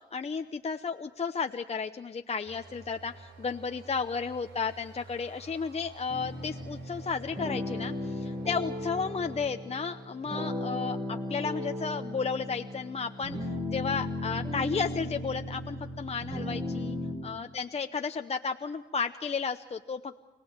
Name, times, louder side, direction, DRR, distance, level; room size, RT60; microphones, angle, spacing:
voice 1, 0.1-17.0 17.2-20.2, left 5 dB, 35° left, 6 dB, 0.8 m, -33 dB
sound 1, 2.4-9.5, right 3 dB, 85° right, 3.6 m, -51 dB
sound 2, 6.1-17.1, left 1 dB, 35° right, 6.9 m, -36 dB
26.5 x 18.0 x 7.3 m, 1.1 s
cardioid pair, 70°, 19 cm